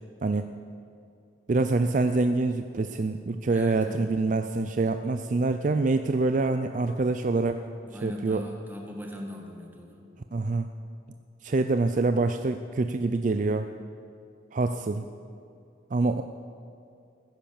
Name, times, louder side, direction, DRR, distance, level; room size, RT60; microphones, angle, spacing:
voice 1, 1.5-7.6 8.0-8.4 10.3-10.7 11.4-13.7 14.5-15.1 15.9-16.2, right 3 dB, 45° right, 8 dB, 0.4 m, -25 dB
voice 2, 3.4-4.1 7.8-10.0, equal, 10° right, 0 dB, 1.8 m, -40 dB
15.0 x 10.5 x 7.2 m, 2.5 s
head